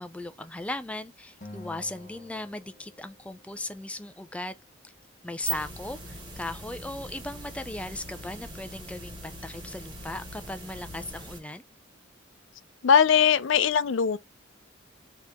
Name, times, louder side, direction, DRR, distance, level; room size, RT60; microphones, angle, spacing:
voice 1, 0.0-4.6 5.2-11.6, left 2 dB, 5° left, 0.4 m, -37 dB
Acoustic guitar, 1.4-3.8, left 2 dB, 40° left, 1.0 m, -48 dB
sound 1, 5.2-11.4, right 3 dB, 20° right, 1.9 m, -40 dB
voice 2, 12.8-14.2, left 7 dB, 75° left, 0.5 m, -20 dB
4.5 x 2.9 x 3.4 m
head